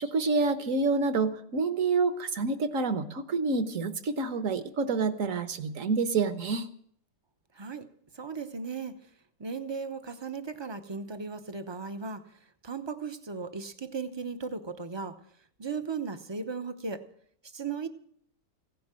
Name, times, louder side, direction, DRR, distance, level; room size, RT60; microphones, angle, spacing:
voice 1, 0.0-6.7, right 4 dB, 55° right, 10 dB, 1.4 m, -28 dB
voice 2, 7.5-7.9 8.1-8.9 9.4-12.2 12.6-15.2 15.6-17.0 17.4-17.9, right 5 dB, 25° right, 9 dB, 0.5 m, -36 dB
16.0 x 10.5 x 7.5 m, 0.65 s
omnidirectional pair, 1.8 m